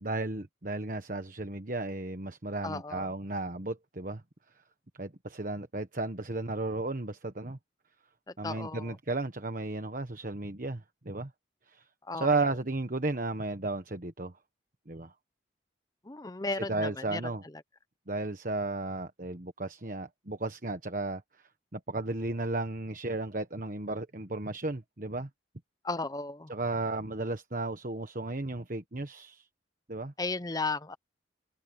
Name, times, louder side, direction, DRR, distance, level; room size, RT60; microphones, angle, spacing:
voice 1, 0.0-4.2 5.0-7.6 8.4-11.3 11.7-11.8 12.1-14.3 14.9-15.1 16.7-17.4 18.1-21.2 21.7-25.3 26.5-29.5 29.9-30.1, right 2 dB, 45° right, 1.3 m, -34 dB
voice 2, 2.6-3.1 8.3-9.0 12.1-12.4 16.0-17.6 25.8-26.5 30.2-31.0, left 3 dB, 20° left, 0.7 m, -35 dB
head